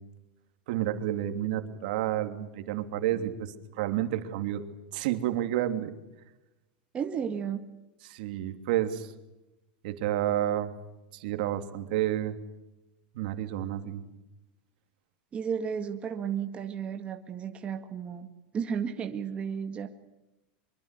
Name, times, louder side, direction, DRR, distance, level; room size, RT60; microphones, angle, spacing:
voice 1, 0.7-4.6 4.9-5.9 8.0-9.1 9.8-10.7 11.1-12.4 13.1-14.0, right 12 dB, 65° right, 7 dB, 2.9 m, -30 dB
voice 2, 6.9-7.7 15.3-19.9, right 7 dB, 20° right, 5 dB, 1.9 m, -33 dB
24.5 x 23.0 x 8.3 m, 0.97 s
supercardioid pair, 150°, 5 cm